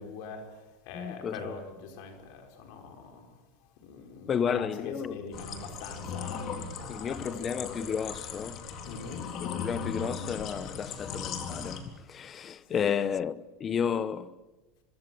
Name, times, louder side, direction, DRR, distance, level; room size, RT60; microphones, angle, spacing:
voice 1, 0.0-3.4 3.8-7.3 7.6-7.8 8.9-9.3 12.7-12.9, left 5 dB, 65° left, 5.0 m, -43 dB
voice 2, 0.9-1.6 4.3-5.3 6.9-8.7 9.4-14.4, left 7 dB, 25° left, 0.9 m, -32 dB
sound 1, 5.3-11.8, left 6 dB, 40° left, 4.0 m, -38 dB
25.0 x 24.5 x 7.9 m
supercardioid pair, 150°, 0 cm